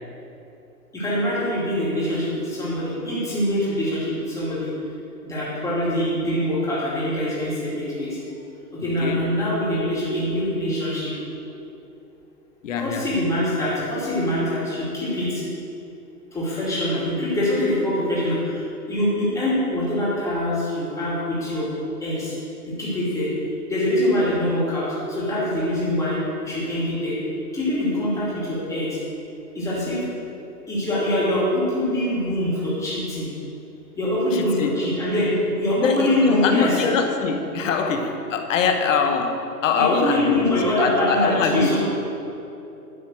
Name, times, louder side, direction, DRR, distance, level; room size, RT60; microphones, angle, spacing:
voice 1, 0.9-4.7 5.2-8.2 8.7-11.1 12.8-15.4 16.3-21.7 22.0-22.3 22.7-23.3 23.7-27.2 27.5-29.0 29.5-30.0 30.7-33.3 34.0-35.3 35.6-36.7 39.7-41.8, left 1 dB, 5° left, -8 dB, 2.2 m, -24 dB
voice 2, 12.6-13.1 34.3-34.8 35.7-41.8, left 5 dB, 50° left, 5 dB, 1.1 m, -23 dB
11.0 x 3.9 x 7.7 m, 2.9 s
hypercardioid pair, 150°, 49 cm